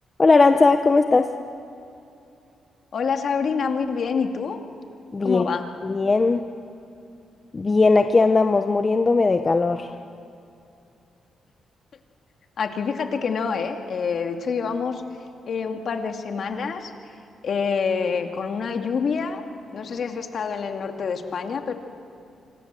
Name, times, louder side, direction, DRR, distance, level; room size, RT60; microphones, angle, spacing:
voice 1, 0.2-1.3 5.1-5.5 5.8-6.5 7.5-9.9, left 3 dB, 30° left, 7 dB, 1.0 m, -18 dB
voice 2, 2.9-4.6 5.2-5.7 12.6-17.2 17.4-19.4 19.7-21.7, left 5 dB, 60° left, 4 dB, 2.5 m, -27 dB
26.5 x 25.0 x 7.7 m, 2.7 s
cardioid pair, 90°, 0 cm